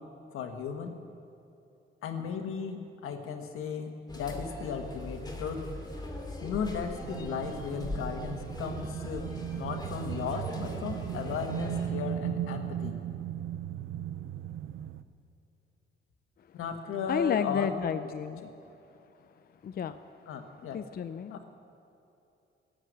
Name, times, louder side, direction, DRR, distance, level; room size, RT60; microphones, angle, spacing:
voice 1, 0.3-1.0 2.0-5.6 6.4-13.0 16.5-17.9 18.4-18.5 20.3-20.8 21.3-21.4, left 6 dB, 90° left, 5 dB, 1.5 m, -36 dB
sound 1, 4.1-11.9, left 1 dB, 20° left, 2.4 m, -41 dB
sound 2, 7.0-15.0, right 10 dB, 75° right, 0.6 m, -37 dB
voice 2, 17.1-18.4 19.6-20.0 20.7-21.3, left 8 dB, 45° left, 10 dB, 0.5 m, -31 dB
17.0 x 7.9 x 9.2 m, 2.9 s
cardioid pair, 95°, 21 cm